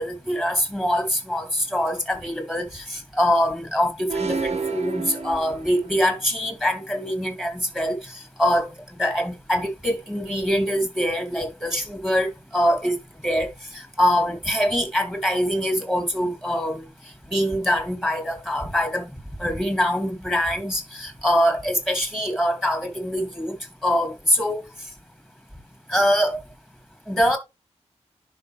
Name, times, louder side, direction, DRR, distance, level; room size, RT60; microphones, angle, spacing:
voice 1, 0.0-8.7 9.0-16.9 17.3-19.1 19.4-23.6 23.8-24.6 25.9-26.4 27.1-27.4, equal, ahead, 2.9 m, -24 dB
sound 1, 4.1-6.1, right 4 dB, 65° right, 1.6 m, -29 dB
10.5 x 5.7 x 3.4 m
wide cardioid pair, 95°, 12 cm